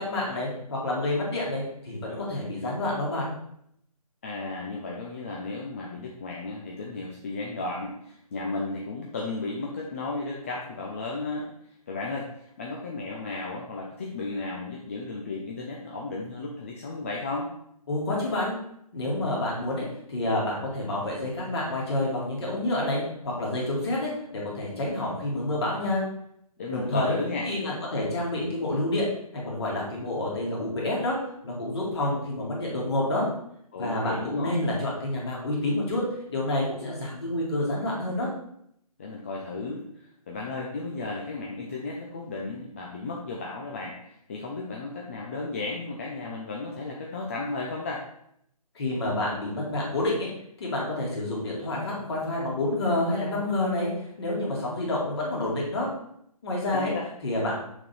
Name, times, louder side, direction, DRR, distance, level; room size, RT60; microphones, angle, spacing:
voice 1, 0.0-3.3 17.9-18.5 18.9-26.0 26.7-27.2 27.4-29.1 29.3-31.2 31.4-33.3 33.8-36.0 36.3-38.3 48.7-50.3 50.6-53.9 54.2-55.9 56.4-56.9 57.2-57.6, left 1 dB, 40° left, -4 dB, 2.3 m, -28 dB
voice 2, 4.2-11.5 11.9-17.5 26.6-27.5 33.7-34.6 39.0-48.0 56.7-57.0, left 3 dB, 20° left, -2 dB, 0.5 m, -34 dB
6.5 x 3.8 x 4.3 m, 0.73 s
figure-of-eight pair, 150°, 20 cm